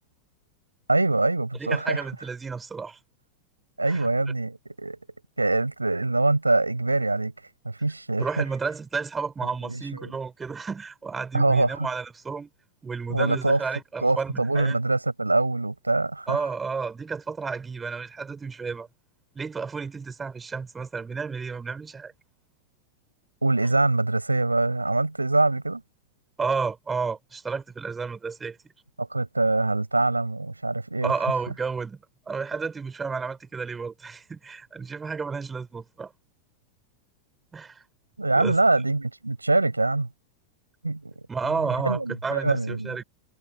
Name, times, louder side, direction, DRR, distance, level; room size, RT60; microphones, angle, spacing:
voice 1, 0.9-2.0 3.8-5.0 5.4-7.3 7.6-8.4 9.6-10.1 11.3-11.9 13.1-13.6 14.0-16.4 23.4-25.8 29.0-31.1 38.2-40.1 40.8-41.1 41.8-43.0, right 2 dB, 85° right, 6.5 m, -24 dB
voice 2, 1.6-3.0 3.8-4.1 8.2-12.5 12.8-14.8 16.3-18.9 19.3-22.1 26.4-28.6 31.0-36.1 37.5-37.8 38.4-38.5 41.3-43.0, right 5 dB, 15° right, 6.6 m, -31 dB
figure-of-eight pair, 90°, 0 cm